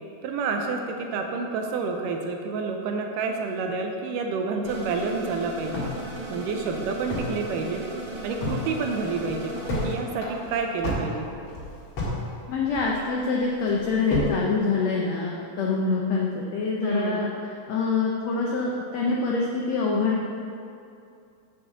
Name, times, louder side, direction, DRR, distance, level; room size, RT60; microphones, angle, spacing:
voice 1, 0.2-5.9 6.3-7.8 8.2-9.6 9.8-11.3 16.8-17.3, right 4 dB, 80° right, 3 dB, 2.2 m, -29 dB
sound 1, 4.6-9.9, right 2 dB, 45° right, 2.8 m, -36 dB
sound 2, 5.7-7.4 7.7-7.8 8.1-8.6 9.0-9.9 10.2-12.2 12.5-13.2 13.7-14.4, left 2 dB, 45° left, 2.4 m, -29 dB
voice 2, 12.5-17.3 17.7-20.2, left 4 dB, 80° left, -2 dB, 1.5 m, -25 dB
7.5 x 5.5 x 6.9 m, 2.5 s
omnidirectional pair, 4.0 m